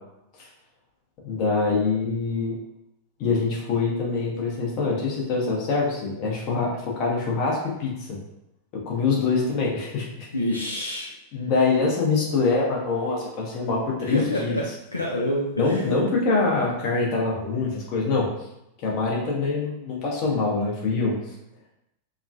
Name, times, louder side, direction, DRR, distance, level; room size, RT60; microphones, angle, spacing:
voice 1, 1.2-2.6 3.2-8.2 8.7-10.3 11.3-14.6 15.6-18.3 18.8-21.2, left 4 dB, 40° left, -3 dB, 1.0 m, -24 dB
voice 2, 10.3-11.1 14.0-15.9, left 1 dB, 80° left, -2 dB, 0.3 m, -27 dB
3.6 x 2.2 x 2.5 m, 0.86 s
figure-of-eight pair, 90°, 0 cm